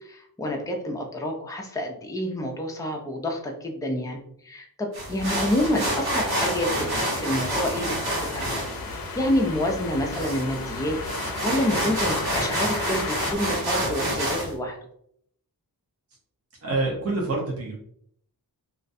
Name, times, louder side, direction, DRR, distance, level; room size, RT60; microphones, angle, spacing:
voice 1, 0.1-4.2 4.5-8.6 8.9-11.0 11.4-14.7, left 1 dB, 10° left, 1 dB, 0.4 m, -28 dB
sound 1, 4.9-14.5, equal, 80° right, 1.2 m, -28 dB
sound 2, 5.6-13.4, left 3 dB, 70° left, 0.5 m, -35 dB
voice 2, 16.6-17.8, right 2 dB, 40° right, -2 dB, 0.6 m, -26 dB
2.4 x 2.1 x 2.6 m, 0.67 s
wide cardioid pair, 120°, 37 cm